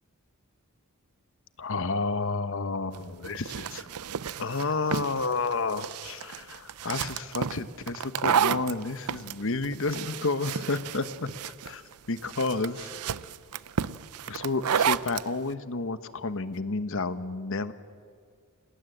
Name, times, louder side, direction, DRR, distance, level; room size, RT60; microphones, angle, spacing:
voice 1, 1.6-3.9 4.4-11.3 11.6-12.9 14.3-17.7, left 3 dB, 60° left, 12 dB, 1.1 m, -31 dB
sound 1, 2.9-15.3, right 7 dB, 85° right, 0.6 m, -31 dB
29.0 x 19.5 x 7.9 m, 2.2 s
head